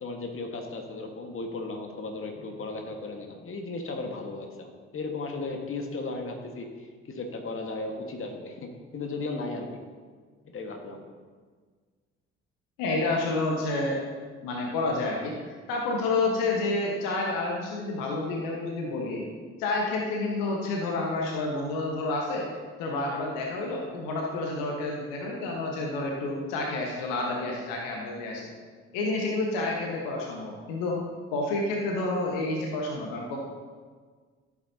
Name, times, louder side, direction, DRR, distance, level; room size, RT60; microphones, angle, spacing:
voice 1, 0.0-9.8 10.4-11.0, left 3 dB, 40° left, 3 dB, 1.7 m, -36 dB
voice 2, 12.8-14.0 14.4-19.2 19.6-22.5 22.8-28.5 28.9-31.0 31.3-33.4, left 2 dB, 65° left, 0 dB, 1.5 m, -29 dB
15.0 x 8.5 x 2.9 m, 1.5 s
figure-of-eight pair, 45°, 35 cm